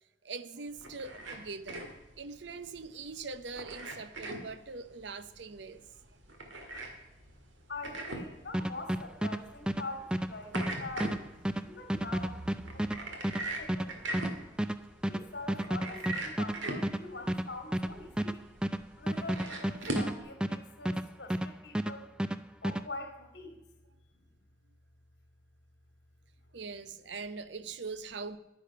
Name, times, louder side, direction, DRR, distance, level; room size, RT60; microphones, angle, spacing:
voice 1, 0.2-1.9 2.2-5.8 11.5-11.6 12.7-13.4 26.5-28.4, right 4 dB, 65° right, 0.7 m, -42 dB
sound 1, 0.7-20.2, right 1 dB, 90° right, 2.1 m, -42 dB
voice 2, 7.7-14.3 15.0-18.4 19.0-22.1 22.6-23.6, left 2 dB, 60° left, 2.5 m, -44 dB
sound 2, 8.5-21.5 21.7-22.8, right 1 dB, 5° right, 0.3 m, -32 dB
10.5 x 10.0 x 5.5 m
head